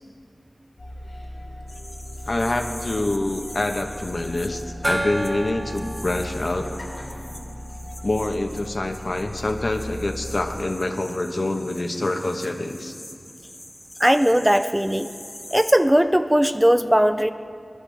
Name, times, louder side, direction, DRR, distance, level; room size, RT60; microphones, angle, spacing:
Tea with Baphomet, 0.8-10.6, equal, 75° left, 2.8 m, -37 dB
sound 1, 1.7-15.7, left 1 dB, 20° left, 1.3 m, -43 dB
voice 1, 2.3-6.7 8.0-12.9, left 2 dB, 55° left, 4 dB, 1.1 m, -26 dB
Gong, 4.8-8.1, right 1 dB, 40° right, 0.8 m, -32 dB
voice 2, 14.0-15.1 15.5-17.3, equal, 10° right, 10 dB, 0.5 m, -18 dB
21.0 x 11.5 x 3.5 m, 2.2 s
cardioid pair, 40°, 0 cm